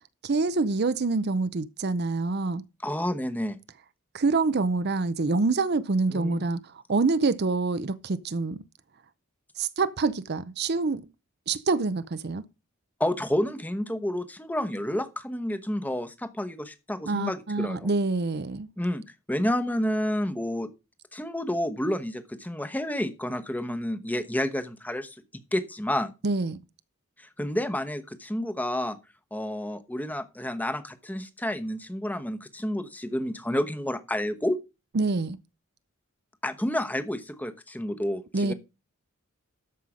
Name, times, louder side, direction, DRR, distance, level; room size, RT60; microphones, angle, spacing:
voice 1, 0.2-2.6 4.1-8.6 9.6-11.1 11.5-12.4 17.0-18.7 26.2-26.6 34.9-35.4 38.3-38.5, right 3 dB, 50° right, 0.6 m, -26 dB
voice 2, 2.8-3.6 6.1-6.4 13.0-17.9 18.8-19.0 19.3-20.7 21.1-25.2 25.5-26.1 27.2-29.0 29.3-34.6 36.4-38.5, left 1 dB, 10° left, 1.0 m, -30 dB
13.0 x 5.5 x 5.0 m
head